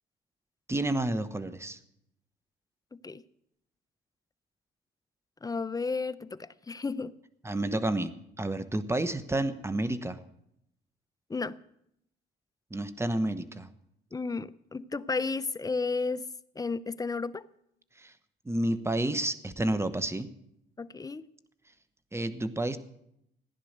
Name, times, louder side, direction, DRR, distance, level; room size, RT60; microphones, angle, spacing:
voice 1, 0.7-1.8 7.4-10.2 12.7-13.7 18.0-18.1 18.5-20.3 22.1-22.8, right 1 dB, 15° right, 12 dB, 1.1 m, -30 dB
voice 2, 2.9-3.2 5.4-7.1 11.3-11.6 14.1-16.3 16.6-17.4 20.8-21.2, left 4 dB, 20° left, 15 dB, 0.6 m, -33 dB
15.5 x 10.5 x 6.6 m, 0.77 s
cardioid pair, 90°, 20 cm